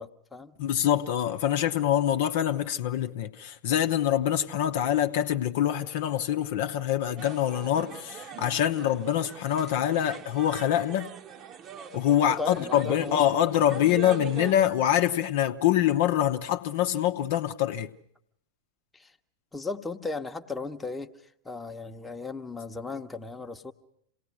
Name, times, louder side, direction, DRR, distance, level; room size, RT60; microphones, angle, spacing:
voice 1, 0.0-0.6 12.2-13.2 18.9-19.2 19.5-21.1 21.4-23.7, left 3 dB, 5° left, 1.1 m, -36 dB
voice 2, 0.6-11.1 11.9-17.9, left 11 dB, 50° left, 0.8 m, -25 dB
sound 1, 7.2-14.5, right 8 dB, 30° right, 1.0 m, -43 dB
27.5 x 19.0 x 6.1 m
figure-of-eight pair, 90°, 0 cm